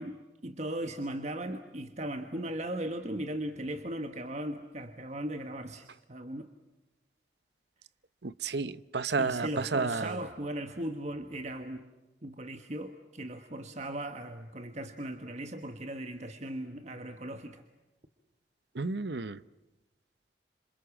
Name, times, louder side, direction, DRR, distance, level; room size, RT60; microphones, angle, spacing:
voice 1, 0.0-6.5 9.2-11.9 12.2-17.6, right 1 dB, 40° right, 7 dB, 1.4 m, -38 dB
voice 2, 8.2-10.2 18.7-19.4, right 4 dB, 65° right, 16 dB, 0.8 m, -31 dB
28.5 x 26.5 x 7.2 m, 1.1 s
head